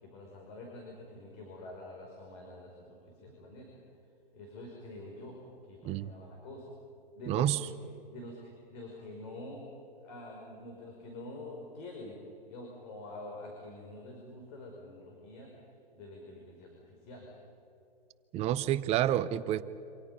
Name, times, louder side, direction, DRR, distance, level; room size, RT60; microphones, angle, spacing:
voice 1, 0.0-3.7 4.3-5.3 5.6-6.7 7.1-7.7 8.1-9.6 10.0-12.1 12.5-15.5 15.9-17.3, left 2 dB, 45° left, 0 dB, 5.2 m, -46 dB
voice 2, 7.3-7.6 18.3-19.6, right 12 dB, 20° right, 15 dB, 0.6 m, -29 dB
27.5 x 25.5 x 5.4 m, 2.8 s
hypercardioid pair, 130°, 30 cm